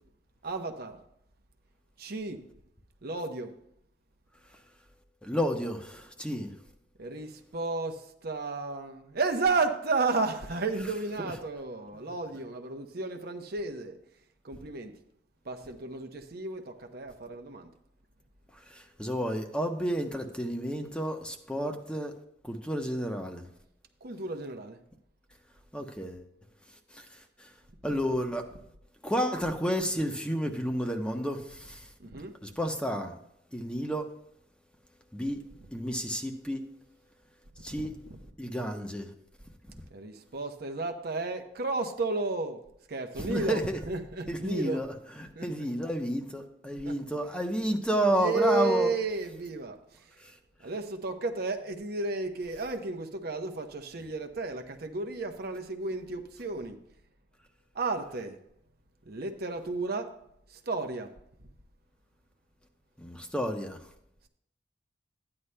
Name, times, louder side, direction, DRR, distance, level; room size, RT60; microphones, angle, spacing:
voice 1, 0.4-1.0 2.0-2.4 3.0-3.5 7.0-14.0 14.4-14.9 15.5-17.7 24.0-24.8 32.0-32.3 39.9-42.6 42.9-44.8 45.4-45.5 46.9-47.0 48.1-49.8 50.6-56.8 57.7-58.4 59.1-60.2 60.5-61.1, right 3 dB, 55° right, 0.8 m, -32 dB
voice 2, 5.2-6.5 11.2-11.3 18.7-22.1 22.4-23.5 25.7-26.2 26.9-27.0 27.4-27.5 27.8-28.4 29.0-31.9 32.4-33.2 33.5-34.1 35.1-35.4 35.7-36.6 37.6-37.9 38.4-39.1 43.2-43.8 44.3-48.9 50.2-50.3 63.0-63.8, equal, 5° left, 0.8 m, -31 dB
13.5 x 9.7 x 2.2 m
head